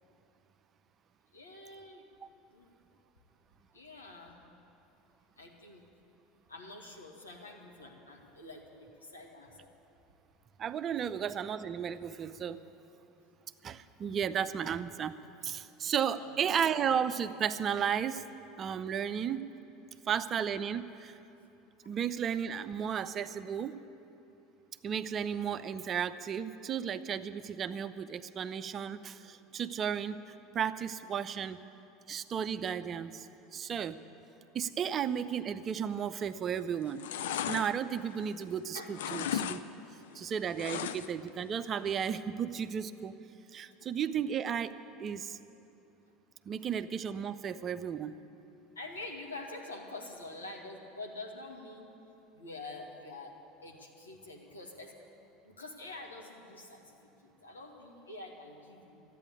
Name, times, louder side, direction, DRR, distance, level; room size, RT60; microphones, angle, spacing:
voice 1, 1.3-2.1 2.5-2.7 3.7-4.4 5.4-5.8 6.5-9.8 16.1-16.5 38.7-38.9 43.8-43.9 48.8-51.9 52.3-55.0 55.4-59.0, left 2 dB, 85° left, 0 dB, 1.7 m, -46 dB
voice 2, 10.6-12.6 13.6-15.2 15.4-18.2 18.6-19.5 20.1-21.1 21.9-23.8 24.8-31.6 32.1-33.3 33.5-34.0 34.5-37.1 37.5-39.6 40.1-43.2 43.5-45.4 46.5-48.1, right 8 dB, 35° right, 12 dB, 0.5 m, -34 dB
sound 1, 36.2-36.5 36.8-38.6 38.9-39.6 39.9-41.3 41.6-41.7, left 9 dB, 70° left, 0.5 m, -36 dB
13.0 x 9.2 x 9.8 m, 2.8 s
figure-of-eight pair, 75°, 0 cm